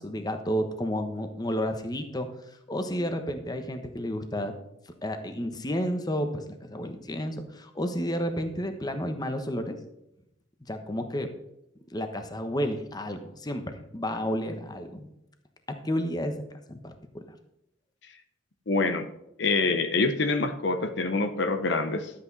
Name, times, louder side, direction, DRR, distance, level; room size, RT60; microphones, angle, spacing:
voice 1, 0.0-2.3 2.7-4.5 5.0-9.8 10.7-11.3 11.9-15.1 15.7-16.4 16.7-17.2, equal, 20° left, 7 dB, 1.1 m, -31 dB
voice 2, 18.7-19.1 19.4-22.1, left 3 dB, 65° left, 9 dB, 0.9 m, -26 dB
12.0 x 8.5 x 4.1 m, 0.83 s
head